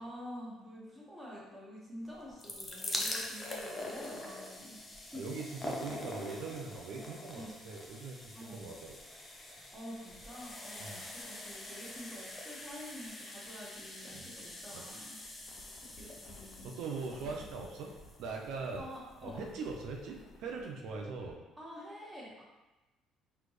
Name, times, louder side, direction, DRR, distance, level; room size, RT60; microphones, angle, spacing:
voice 1, 0.0-5.2 6.9-7.0 7.3-7.5 8.3-8.6 9.7-15.2 15.9-16.7 17.2-17.6 18.8-19.5 21.6-22.4, equal, 10° right, -6 dB, 1.5 m, -48 dB
sound 1, 2.1-19.2 19.9-20.0 20.2-20.3, left 1 dB, 25° left, 0.7 m, -44 dB
voice 2, 5.1-9.0 10.8-11.0 14.1-14.2 14.7-15.1 16.6-17.9 18.2-18.8 19.2-21.4, right 4 dB, 75° right, 1 dB, 0.5 m, -41 dB
sound 2, 15.1-21.4, left 3 dB, 65° left, 0.4 m, -56 dB
4.1 x 3.2 x 3.1 m, 1.1 s
cardioid pair, 95°, 0 cm